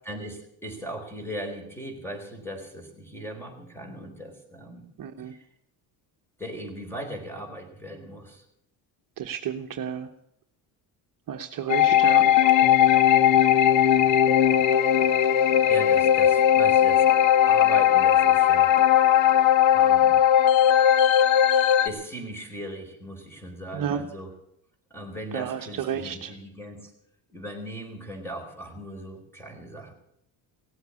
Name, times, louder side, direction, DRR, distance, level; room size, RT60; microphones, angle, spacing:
voice 1, 0.0-4.9 5.3-5.4 6.4-8.4 15.7-17.1 17.5-18.8 19.7-20.2 21.4-21.6 21.8-24.3 24.9-26.9 27.3-29.9, right 1 dB, 5° left, 4 dB, 3.9 m, -38 dB
voice 2, 5.0-5.3 9.2-10.1 11.3-12.3 23.7-24.1 25.3-26.3, right 8 dB, 50° right, 5 dB, 1.1 m, -31 dB
sound 1, 11.7-21.9, left 10 dB, 85° left, 1.0 m, -18 dB
17.5 x 8.1 x 9.6 m, 0.75 s
cardioid pair, 120°, 44 cm